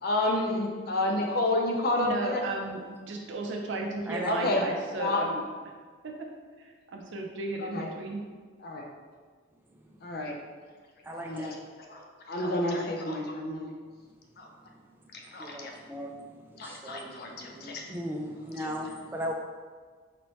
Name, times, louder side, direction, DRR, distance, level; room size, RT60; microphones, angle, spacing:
voice 1, 0.0-2.4 4.3-4.7 5.0-5.3 7.6-7.9 8.6-8.8 10.0-10.4 11.1-11.6 11.9-13.7 14.4-14.5 15.1-15.7 16.6-17.8 18.6-18.7, left 2 dB, 50° left, 1 dB, 0.5 m, -30 dB
voice 2, 2.0-2.8 3.1-5.4 6.0-6.3 6.6-8.2, right 2 dB, 65° right, 1 dB, 0.5 m, -34 dB
voice 3, 11.1-11.5 15.4-16.1 16.6-19.3, equal, 10° right, 1 dB, 0.3 m, -37 dB
4.1 x 3.1 x 3.0 m, 1.5 s
head